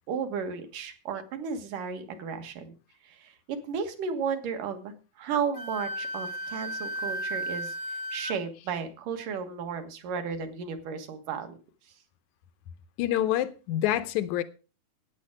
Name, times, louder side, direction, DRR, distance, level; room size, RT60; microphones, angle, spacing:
voice 1, 0.1-2.7 3.0-7.7 8.1-11.6, right 6 dB, 65° right, 2.9 m, -34 dB
Wind instrument woodwind instrument, 5.5-8.3, right 1 dB, 55° left, 1.1 m, -34 dB
voice 2, 13.0-14.4, left 12 dB, 80° left, 1.7 m, -27 dB
13.0 x 9.4 x 4.8 m
omnidirectional pair, 4.2 m